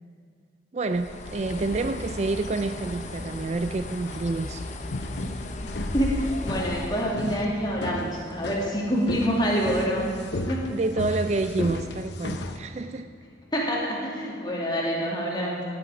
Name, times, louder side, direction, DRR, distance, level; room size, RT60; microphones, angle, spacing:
voice 1, 0.7-4.7 7.0-7.5 10.7-13.1 15.4-15.6, right 3 dB, 35° right, 9 dB, 0.4 m, -29 dB
Bird, 0.9-7.2, left 2 dB, 40° left, 0.7 m, -36 dB
sound 1, 2.9-12.6, left 2 dB, 70° left, 0.8 m, -35 dB
voice 2, 5.9-10.0 10.5-10.7 13.5-15.6, equal, 25° left, -4 dB, 2.5 m, -26 dB
17.0 x 10.0 x 4.9 m, 2.3 s
head